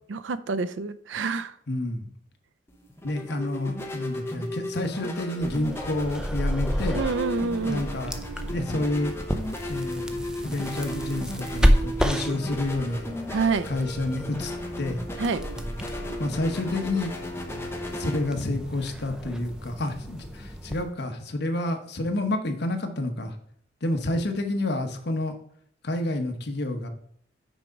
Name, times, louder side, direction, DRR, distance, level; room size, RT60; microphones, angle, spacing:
voice 1, 0.1-1.5 6.9-7.8 13.3-13.7 15.2-15.4, right 4 dB, 75° right, 13 dB, 0.5 m, -27 dB
voice 2, 1.7-2.1 3.0-7.0 7.7-8.1 8.5-9.1 9.7-13.1 13.7-14.5 14.8-15.0 16.2-17.1 17.9-23.3 23.8-25.3 25.8-26.9, left 2 dB, 60° left, 5 dB, 1.0 m, -29 dB
sound 1, 2.7-20.9, equal, 15° left, 0.9 m, -36 dB
sound 2, 5.4-20.8, equal, 5° right, 0.5 m, -31 dB
6.2 x 4.7 x 5.2 m, 0.65 s
head